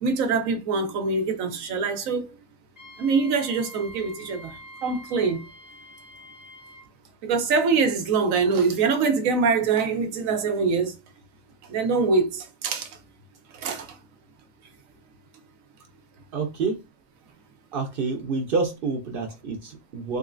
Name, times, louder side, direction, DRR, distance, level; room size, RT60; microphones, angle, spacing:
voice 1, 0.0-2.4 3.0-5.5 7.2-11.0 11.7-13.0 13.5-14.0, right 4 dB, 65° right, 1.0 m, -24 dB
Wind instrument woodwind instrument, 2.8-6.9, equal, 25° left, 1.7 m, -45 dB
voice 2, 16.3-16.8 17.7-20.2, right 4 dB, 90° right, 0.4 m, -28 dB
3.7 x 3.0 x 2.5 m
omnidirectional pair, 1.7 m